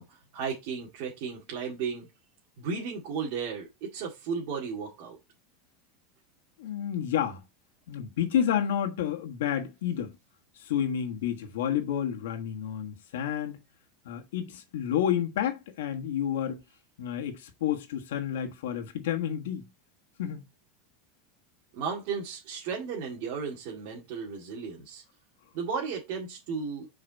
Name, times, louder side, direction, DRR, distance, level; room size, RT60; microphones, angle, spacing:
voice 1, 0.0-2.1 2.6-5.2 21.7-25.0 25.5-26.9, right 5 dB, 50° right, 2.1 m, -34 dB
voice 2, 6.6-7.4 7.9-10.1 10.5-13.6 14.0-16.6 17.0-19.6 20.2-20.4, left 9 dB, 90° left, 1.4 m, -30 dB
7.0 x 4.9 x 4.0 m
supercardioid pair, 165°, 0 cm